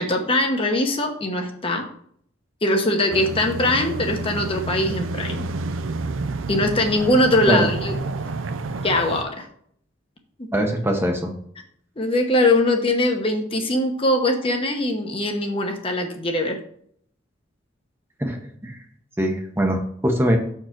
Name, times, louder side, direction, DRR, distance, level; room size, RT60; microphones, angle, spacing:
voice 1, 0.0-1.8 2.6-5.5 6.5-7.9 8.8-9.5 12.0-16.6, left 1 dB, 30° left, 3 dB, 1.0 m, -21 dB
sound 1, 3.1-9.2, right 3 dB, 85° right, 0.5 m, -29 dB
voice 2, 10.5-11.3 18.2-18.8 19.2-20.4, equal, 10° right, 3 dB, 0.9 m, -22 dB
6.4 x 4.6 x 5.9 m, 0.65 s
head